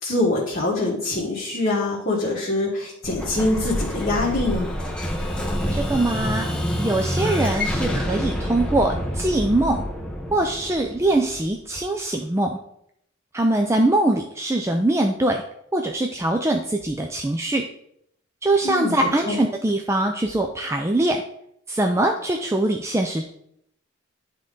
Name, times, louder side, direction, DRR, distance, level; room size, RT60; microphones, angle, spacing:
voice 1, 0.0-4.7 18.6-19.0 19.3-19.4, left 2 dB, 45° left, -6 dB, 1.4 m, -24 dB
Explosion, 3.0-11.7, equal, 5° left, 0.8 m, -27 dB
voice 2, 5.7-6.5 6.8-9.8 10.3-12.6 13.3-15.4 15.7-17.6 18.4-21.2 21.7-23.2, right 1 dB, 15° right, 3 dB, 0.4 m, -22 dB
10.5 x 3.7 x 3.8 m, 0.73 s
head